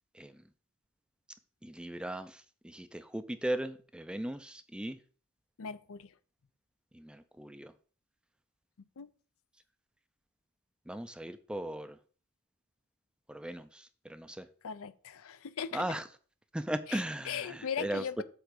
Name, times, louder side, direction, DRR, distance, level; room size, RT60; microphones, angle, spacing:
voice 1, 1.6-5.0 6.9-7.7 10.9-12.0 13.3-14.5 15.7-16.0 16.5-18.2, right 1 dB, 5° right, 0.5 m, -38 dB
voice 2, 5.6-6.1 9.0-9.1 14.6-15.9 16.9-18.2, left 7 dB, 65° left, 0.5 m, -39 dB
8.0 x 3.6 x 6.6 m
head